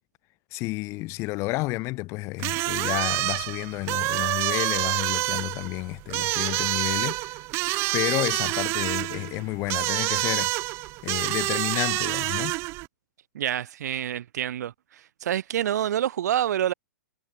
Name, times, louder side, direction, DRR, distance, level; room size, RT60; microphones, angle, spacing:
voice 1, 0.5-7.4 7.9-10.5 11.0-12.5, left 22 dB, 30° left, 3.2 m, -30 dB
sound 1, 2.4-12.9, right 23 dB, 25° right, 0.6 m, -27 dB
voice 2, 13.3-14.7 15.2-16.7, right 11 dB, 65° right, 1.6 m, -27 dB
hypercardioid pair, 155°, 10 cm